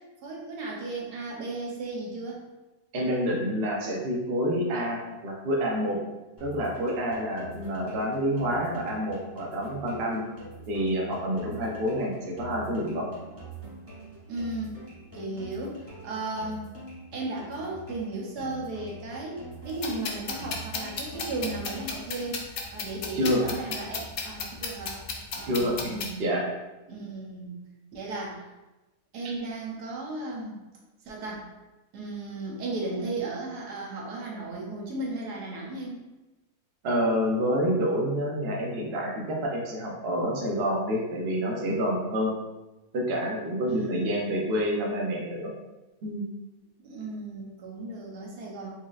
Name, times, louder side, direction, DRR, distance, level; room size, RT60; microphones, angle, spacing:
voice 1, 0.0-2.4 14.3-16.7 17.1-22.4 22.7-25.0 25.3-26.4 26.9-27.5 27.9-28.5 29.1-30.6 31.0-31.4 31.9-36.0 43.7-44.1 46.8-48.7, right 2 dB, 85° right, -2 dB, 1.4 m, -35 dB
voice 2, 2.9-6.0 6.4-10.2 10.7-13.1 23.1-23.4 25.4-26.4 36.8-42.3 42.9-45.5 46.0-46.3, equal, 50° right, -2 dB, 0.8 m, -28 dB
sound 1, 6.4-22.4, right 2 dB, 10° right, 1.1 m, -45 dB
sound 2, 19.7-26.1, left 4 dB, 75° left, 0.5 m, -35 dB
4.6 x 2.8 x 2.4 m, 1.0 s
omnidirectional pair, 1.7 m